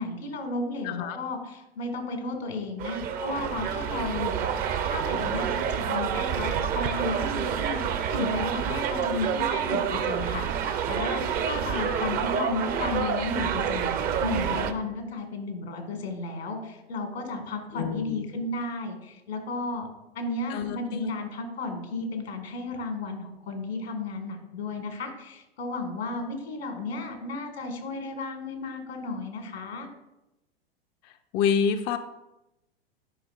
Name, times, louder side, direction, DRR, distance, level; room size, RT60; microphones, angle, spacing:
voice 1, 0.0-7.8 8.1-19.9 20.1-29.9, left 3 dB, 85° left, 4 dB, 1.7 m, -33 dB
voice 2, 0.8-1.2 17.7-18.3 20.5-21.1 31.0-32.0, left 7 dB, 30° left, 8 dB, 0.4 m, -28 dB
sound 1, 2.8-14.7, right 8 dB, 30° right, 0.5 m, -28 dB
10.0 x 5.1 x 2.4 m, 0.93 s
hypercardioid pair, 105°, 31 cm